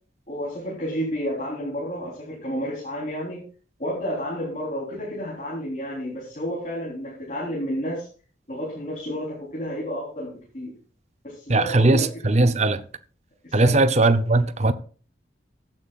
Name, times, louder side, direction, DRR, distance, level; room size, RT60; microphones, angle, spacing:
voice 1, 0.3-3.4 3.8-8.1 8.5-10.7 11.2-12.0 13.4-13.8, equal, 40° left, 3.7 m, -31 dB
voice 2, 11.5-12.8 13.5-14.7, right 2 dB, 35° right, 0.6 m, -19 dB
15.0 x 9.6 x 2.4 m
head